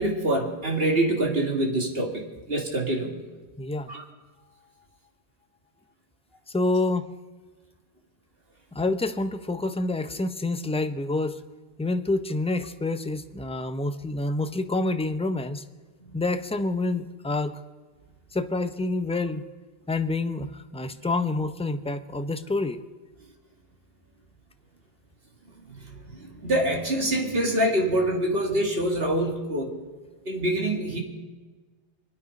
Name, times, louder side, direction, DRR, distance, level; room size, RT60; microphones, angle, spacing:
voice 1, 0.0-3.3 3.9-4.0 16.0-16.2 25.7-29.8 30.3-31.0, right 1 dB, 70° right, 1 dB, 2.6 m, -26 dB
voice 2, 3.6-3.9 6.5-7.1 8.7-11.4 11.8-15.6 16.1-17.6 18.3-19.4 19.9-22.8, left 2 dB, 5° left, 9 dB, 0.5 m, -27 dB
25.0 x 9.4 x 5.3 m, 1.3 s
omnidirectional pair, 1.0 m